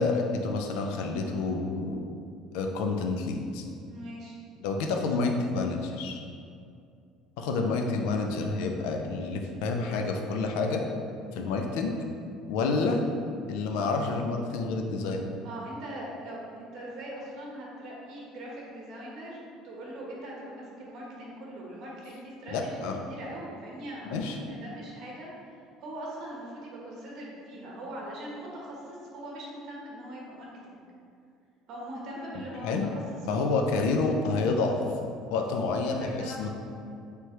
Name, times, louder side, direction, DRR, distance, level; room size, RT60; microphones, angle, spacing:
voice 1, 0.0-2.0 2.5-3.6 4.6-6.2 7.4-10.8 11.3-11.9 12.5-13.0 13.5-15.3 22.5-23.0 24.1-24.4 32.6-32.9 33.3-34.8 35.3-36.5, left 3 dB, 80° left, 3 dB, 0.5 m, -28 dB
voice 2, 3.9-4.3 12.6-12.9 15.4-25.3 25.8-30.8 31.7-32.9 33.3-33.5 36.0-36.5, right 1 dB, 50° right, -3 dB, 1.1 m, -41 dB
4.6 x 3.4 x 3.0 m, 2.4 s
cardioid pair, 165°, 0 cm